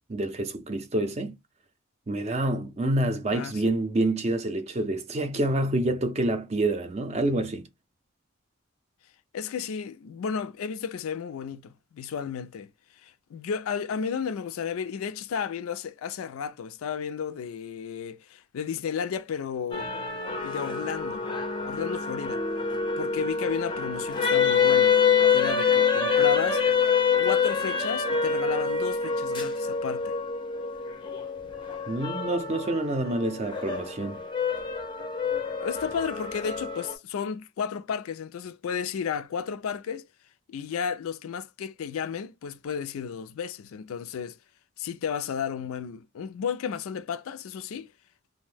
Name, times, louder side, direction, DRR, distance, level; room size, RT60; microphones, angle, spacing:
voice 1, 0.1-1.3 2.1-7.6 31.9-34.2, right 1 dB, 30° right, 0.4 m, -27 dB
voice 2, 3.3-3.6 9.3-12.7 13.0-19.9 20.4-21.3 21.7-22.5 23.0-25.0 25.3-26.6 27.2-30.2 35.6-40.1 40.5-44.4 44.8-47.9, left 7 dB, 85° left, 0.3 m, -33 dB
sound 1, 19.7-36.9, left 6 dB, 20° left, 0.5 m, -26 dB
2.6 x 2.1 x 3.2 m
head